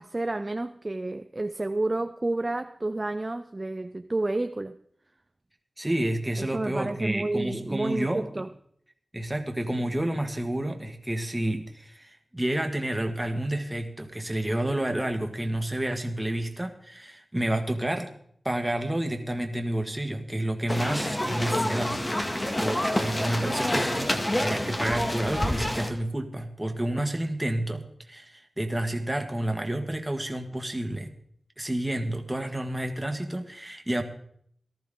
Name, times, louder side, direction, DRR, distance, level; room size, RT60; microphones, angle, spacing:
voice 1, 0.0-4.8 6.4-8.5, right 2 dB, 30° right, 0.5 m, -30 dB
voice 2, 5.8-8.4 9.1-18.1 18.4-31.1 31.6-34.0, right 1 dB, 10° right, 1.7 m, -30 dB
sound 1, 20.7-25.9, left 1 dB, 25° left, 1.8 m, -27 dB
18.0 x 13.5 x 3.8 m
wide cardioid pair, 90°, 0 cm